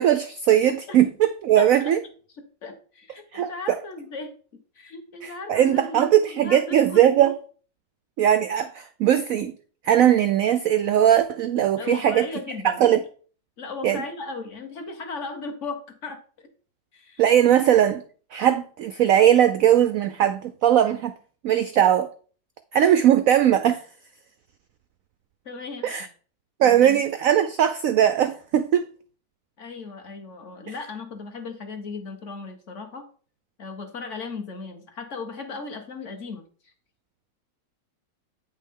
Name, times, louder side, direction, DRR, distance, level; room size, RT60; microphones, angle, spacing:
voice 1, 0.0-2.0 3.3-3.5 5.2-7.4 8.2-9.5 9.8-12.2 12.6-13.0 13.8-14.0 17.2-18.0 18.3-21.1 21.4-22.1 22.7-23.8 25.8-26.1 26.6-28.9, right 10 dB, 80° right, 0.7 m, -19 dB
voice 2, 1.5-1.9 2.6-4.4 4.7-7.3 11.8-12.9 13.6-16.5 16.9-17.5 25.4-26.1 26.6-27.0 29.6-33.0 33.6-36.7, left 3 dB, 45° left, 1.4 m, -37 dB
8.8 x 5.6 x 3.7 m
omnidirectional pair, 2.0 m